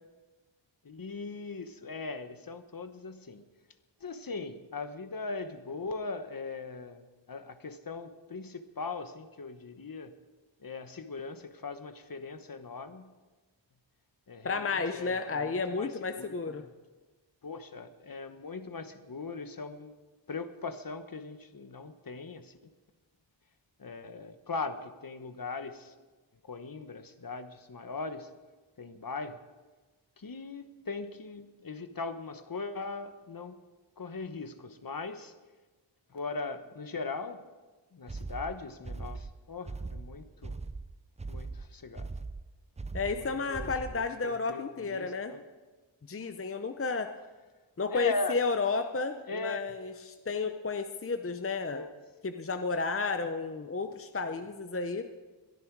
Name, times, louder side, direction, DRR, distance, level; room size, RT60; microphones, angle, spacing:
voice 1, 0.8-3.4 4.0-10.1 10.6-13.1 14.3-16.7 17.4-19.9 20.3-22.5 23.8-25.9 26.4-28.3 28.8-29.4 30.2-33.6 34.0-35.3 36.1-37.4 37.9-40.6 41.3-42.1 43.1-45.4 47.9-48.4 49.3-49.8 51.7-51.9 54.2-54.4, left 3 dB, 45° left, 10 dB, 1.1 m, -40 dB
voice 2, 14.4-16.6 42.9-45.3 46.1-47.1 47.8-51.8 52.2-55.1, left 4 dB, 30° left, 7 dB, 0.7 m, -32 dB
sound 1, 38.1-44.1, right 3 dB, 15° right, 0.4 m, -40 dB
22.0 x 13.0 x 4.7 m, 1.3 s
wide cardioid pair, 80°, 46 cm